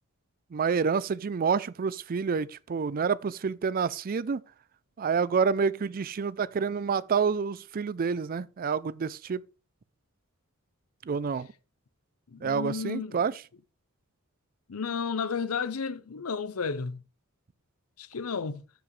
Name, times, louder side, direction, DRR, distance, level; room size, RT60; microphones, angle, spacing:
voice 1, 0.5-4.4 5.0-9.4 11.1-11.5 12.4-13.4, right 5 dB, 40° right, 0.4 m, -28 dB
voice 2, 12.3-13.2 14.7-17.0 18.0-18.6, left 5 dB, 85° left, 0.7 m, -32 dB
14.0 x 5.0 x 3.2 m
head